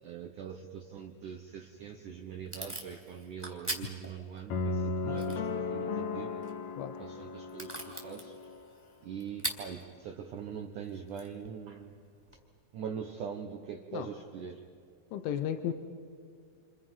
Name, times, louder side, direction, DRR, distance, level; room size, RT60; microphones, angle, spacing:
voice 1, 0.0-6.3 7.0-8.4 9.0-12.0 12.7-14.7, right 7 dB, 75° right, 4 dB, 1.9 m, -42 dB
Packing tape duct tape / Tearing, 1.6-12.4, right 1 dB, 5° right, 2.4 m, -45 dB
sound 1, 4.5-8.6, left 4 dB, 60° left, 1.8 m, -35 dB
voice 2, 15.1-15.7, left 10 dB, 85° left, 8 dB, 3.4 m, -33 dB
29.5 x 28.5 x 5.6 m, 2.3 s
omnidirectional pair, 5.4 m